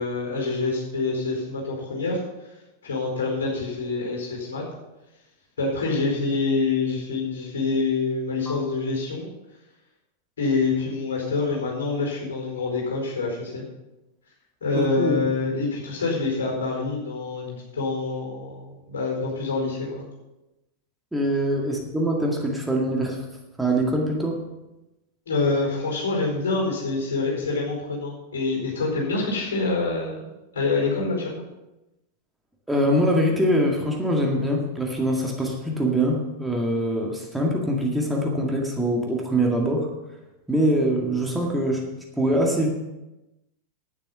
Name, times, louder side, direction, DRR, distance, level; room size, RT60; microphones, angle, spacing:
voice 1, 0.0-2.2 2.8-4.6 5.6-9.3 10.4-13.6 14.6-20.1 25.3-30.3 30.5-31.4, left 3 dB, 65° left, -1 dB, 4.7 m, -26 dB
voice 2, 14.7-15.3 21.1-23.2 23.6-24.4 32.7-39.9 40.5-41.9 42.2-42.7, right 1 dB, 5° right, -1 dB, 2.0 m, -23 dB
11.0 x 9.5 x 5.6 m, 0.99 s
figure-of-eight pair, 90°, 0 cm